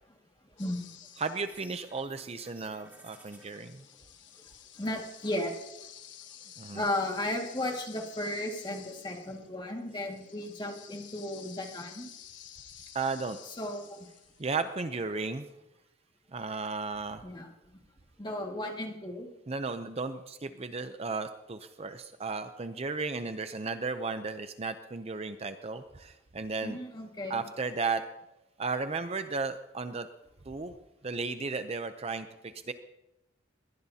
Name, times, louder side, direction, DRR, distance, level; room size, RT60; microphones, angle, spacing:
sound 1, 0.6-2.1 2.4-14.7, left 10 dB, 65° left, 1.3 m, -52 dB
voice 1, 0.6-1.0 4.8-5.5 6.7-12.1 13.4-14.0 17.2-17.5 18.2-19.3 26.6-27.4, left 1 dB, 25° left, 1 dB, 2.0 m, -35 dB
voice 2, 1.2-3.8 6.6-6.9 12.9-13.4 14.4-15.5 16.3-17.2 19.5-26.8 27.3-28.0 28.6-30.1 30.5-30.7 31.0-32.7, right 4 dB, 30° right, 9 dB, 0.6 m, -34 dB
sound 2, 1.4-3.6, right 1 dB, 10° right, 2.9 m, -55 dB
21.5 x 17.5 x 2.8 m, 0.94 s
head